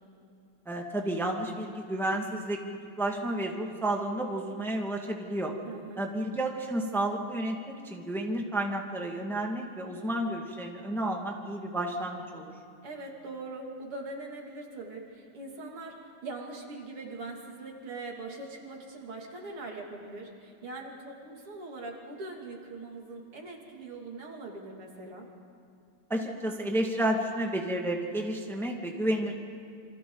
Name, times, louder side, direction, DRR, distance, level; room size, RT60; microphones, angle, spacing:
voice 1, 0.6-2.6 3.0-5.5 6.0-12.5 26.1-29.3, right 1 dB, ahead, 1 dB, 1.6 m, -31 dB
voice 2, 5.7-6.0 12.8-25.3, right 2 dB, 85° right, 0 dB, 3.5 m, -42 dB
28.5 x 25.5 x 3.9 m, 2.4 s
omnidirectional pair, 2.4 m